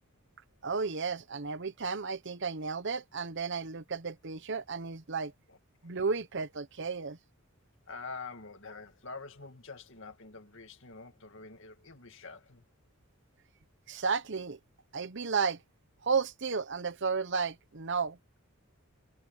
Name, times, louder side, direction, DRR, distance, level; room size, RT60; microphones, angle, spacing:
voice 1, 0.6-5.3 5.8-7.2 13.9-14.6 14.9-15.6 16.0-18.2, right 5 dB, 55° right, 0.9 m, -33 dB
voice 2, 7.9-12.6, left 4 dB, 60° left, 2.2 m, -46 dB
head